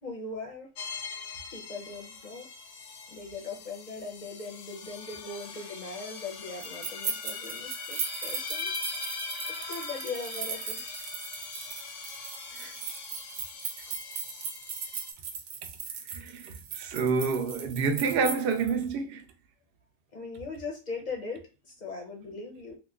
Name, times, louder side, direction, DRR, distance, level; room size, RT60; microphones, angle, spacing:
voice 1, 0.0-0.7 1.5-2.5 3.1-8.7 9.5-10.8 20.1-22.8, left 3 dB, 45° left, 0.6 m, -40 dB
sound 1, 0.8-15.1, left 5 dB, 70° left, 0.9 m, -41 dB
sound 2, 6.6-18.7, right 6 dB, 80° right, 1.0 m, -38 dB
voice 2, 16.1-19.2, right 5 dB, 60° right, 0.6 m, -28 dB
2.9 x 2.1 x 3.5 m
omnidirectional pair, 1.4 m